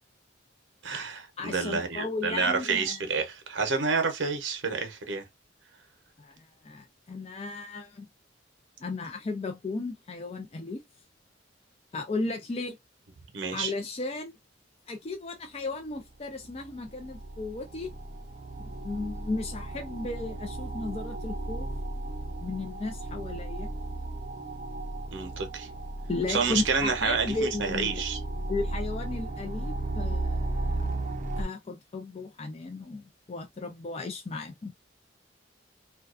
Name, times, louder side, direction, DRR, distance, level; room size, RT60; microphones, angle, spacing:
voice 1, 0.8-5.2 13.3-13.7 25.1-25.7 26.3-28.2, right 4 dB, 75° right, 0.7 m, -29 dB
voice 2, 1.4-3.0 6.2-8.1 8.8-10.8 11.9-12.8 13.5-14.3 14.9-17.9 18.6-21.7 22.4-23.7 26.1-28.0 28.5-30.8 31.4-34.8, left 3 dB, 30° left, 0.4 m, -35 dB
sound 1, 16.1-16.2 16.4-31.4, right 2 dB, 40° right, 0.5 m, -35 dB
2.3 x 2.2 x 2.3 m
head